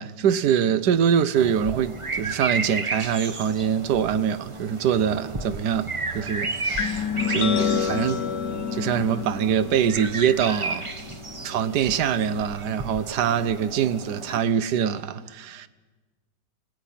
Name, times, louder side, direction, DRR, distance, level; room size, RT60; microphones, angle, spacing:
voice 1, 0.0-8.2 8.7-10.9 11.4-15.7, right 8 dB, 75° right, 1.4 m, -24 dB
sound 1, 1.4-14.4, right 3 dB, 25° right, 0.8 m, -34 dB
sound 2, 6.8-12.4, left 7 dB, 65° left, 1.3 m, -30 dB
29.0 x 19.5 x 5.8 m
omnidirectional pair, 1.8 m